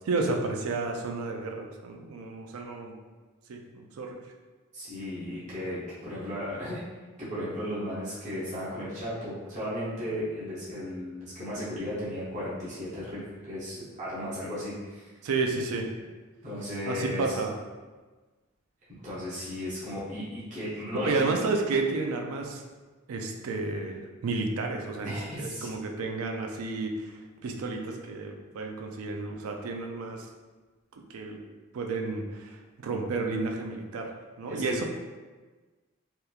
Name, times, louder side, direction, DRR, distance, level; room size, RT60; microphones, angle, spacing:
voice 1, 0.1-3.0 3.5-4.2 15.2-15.9 16.9-17.5 21.0-22.6 23.1-30.3 31.1-31.4 31.7-34.9, right 3 dB, 85° right, 3 dB, 0.4 m, -31 dB
voice 2, 4.7-6.8 7.2-15.1 16.4-17.4 18.9-21.3 25.0-25.7 34.5-34.8, left 1 dB, 35° right, -9 dB, 0.7 m, -35 dB
2.9 x 2.2 x 2.3 m, 1.3 s
head